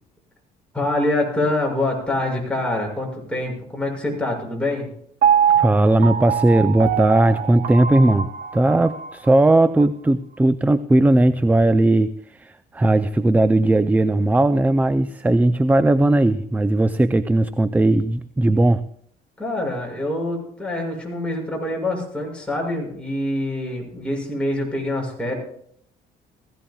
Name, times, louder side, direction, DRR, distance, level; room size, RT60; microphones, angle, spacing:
voice 1, 0.7-4.9 19.4-25.4, left 1 dB, 5° left, -1 dB, 6.4 m, -25 dB
Piano, 5.2-9.3 9.8-9.9, right 8 dB, 60° right, 1.1 m, -23 dB
voice 2, 5.6-18.8, right 2 dB, 10° right, 13 dB, 0.4 m, -18 dB
20.0 x 15.5 x 2.3 m, 0.65 s
cardioid pair, 110°, 17 cm